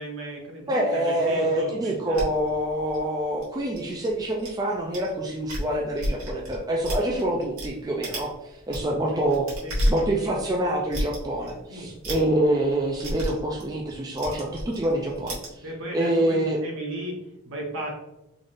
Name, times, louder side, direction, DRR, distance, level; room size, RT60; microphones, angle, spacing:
voice 1, 0.0-2.3 9.1-9.3 9.6-10.3 11.7-11.9 15.6-17.9, right 1 dB, 60° right, -1 dB, 1.0 m, -36 dB
voice 2, 0.7-9.5 9.9-15.6 15.9-16.6, right 1 dB, 15° right, -2 dB, 0.4 m, -26 dB
sound 1, 2.1-4.5 4.9-5.1 5.4-7.7 8.0-8.3 8.6-15.5, equal, 85° right, 1.5 m, -31 dB
3.8 x 3.5 x 2.5 m, 0.92 s
head